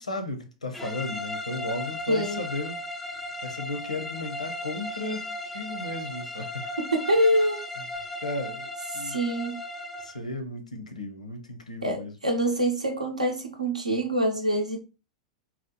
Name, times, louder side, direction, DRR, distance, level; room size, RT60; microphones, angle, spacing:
voice 1, 0.0-2.8 3.4-6.7 8.2-9.2 10.0-12.2, left 2 dB, 85° left, 0.6 m, -35 dB
sound 1, 0.7-10.2, left 1 dB, 5° left, 0.4 m, -36 dB
voice 2, 2.1-2.4 6.8-7.6 8.9-9.6 11.8-14.8, right 1 dB, 90° right, 0.7 m, -25 dB
4.0 x 2.0 x 2.8 m
figure-of-eight pair, 95°, 4 cm